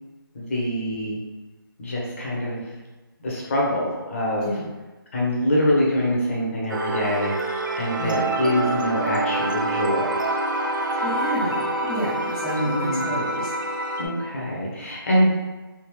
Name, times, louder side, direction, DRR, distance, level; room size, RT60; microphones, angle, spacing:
voice 1, 0.3-1.2 1.8-2.6 3.2-4.5 5.1-10.3 12.6-13.2 14.0-15.3, left 1 dB, 35° left, -4 dB, 0.9 m, -24 dB
sound 1, 6.7-14.1, right 2 dB, 55° right, 0.6 m, -26 dB
voice 2, 11.0-13.5, right 1 dB, 5° left, -16 dB, 0.6 m, -30 dB
3.5 x 2.3 x 3.2 m, 1.2 s
figure-of-eight pair, 160°, 12 cm